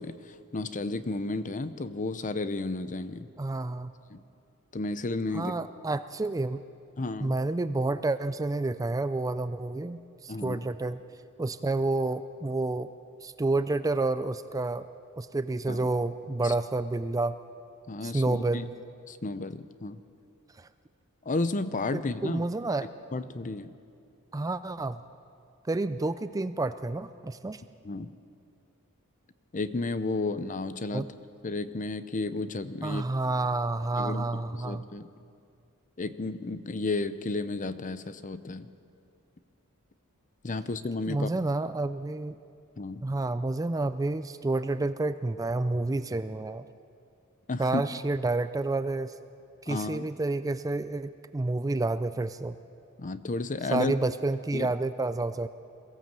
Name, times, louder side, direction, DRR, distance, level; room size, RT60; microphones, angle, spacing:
voice 1, 0.0-3.3 4.1-4.2 4.7-5.5 7.0-7.4 10.3-10.6 15.7-15.9 16.4-16.5 17.9-18.7 19.1-20.0 21.2-22.4 23.1-23.7 27.8-28.1 29.5-31.1 31.4-33.0 34.0-35.1 36.0-38.7 40.4-41.4 42.8-43.0 47.5-47.8 49.7-50.1 53.0-53.9 54.5-54.7, left 2 dB, 35° left, 13 dB, 0.7 m, -32 dB
voice 2, 3.4-3.9 5.3-6.6 7.2-11.0 11.4-12.9 13.2-14.9 15.2-17.4 18.0-18.7 20.6-20.7 21.9-22.9 24.3-25.0 25.6-27.6 30.9-31.1 32.8-34.8 41.1-42.4 43.0-46.6 47.6-49.1 49.6-52.6 53.7-55.5, right 2 dB, 15° right, 12 dB, 0.4 m, -29 dB
22.5 x 15.5 x 7.5 m, 2.5 s
head